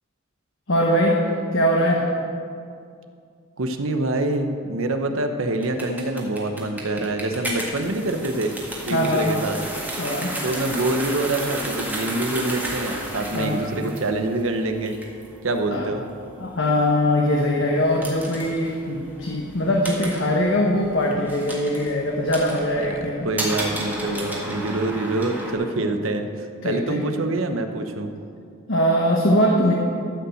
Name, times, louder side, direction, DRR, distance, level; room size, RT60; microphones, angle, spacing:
voice 1, 0.7-1.2 1.5-2.0 8.9-9.4 10.0-10.4 13.3-13.6 15.7-15.9 16.4-23.3 26.6-27.0 28.7-29.7, equal, 60° left, -1 dB, 1.1 m, -21 dB
voice 2, 3.6-8.5 8.8-9.6 10.4-15.0 15.4-16.0 22.8-28.1, right 2 dB, 70° right, 6 dB, 0.9 m, -25 dB
sound 1, 5.6-25.5, right 1 dB, 10° right, 1.7 m, -33 dB
14.0 x 5.7 x 7.7 m, 2.4 s
head